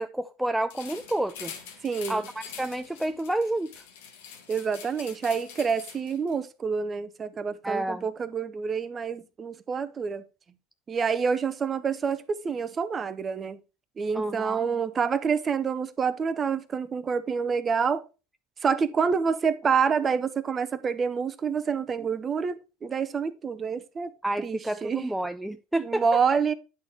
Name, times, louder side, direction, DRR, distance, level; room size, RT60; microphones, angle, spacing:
voice 1, 0.0-1.5 2.1-3.7 7.6-8.1 14.1-14.6 24.2-26.0, right 1 dB, 5° right, 0.4 m, -29 dB
sound 1, 0.7-6.3, left 7 dB, 75° left, 1.5 m, -44 dB
voice 2, 1.8-2.2 4.5-10.2 10.9-13.6 14.0-18.0 18.6-24.1 24.4-25.1 25.8-26.5, right 6 dB, 30° right, 0.8 m, -27 dB
9.7 x 4.1 x 4.5 m
hypercardioid pair, 95°, 0 cm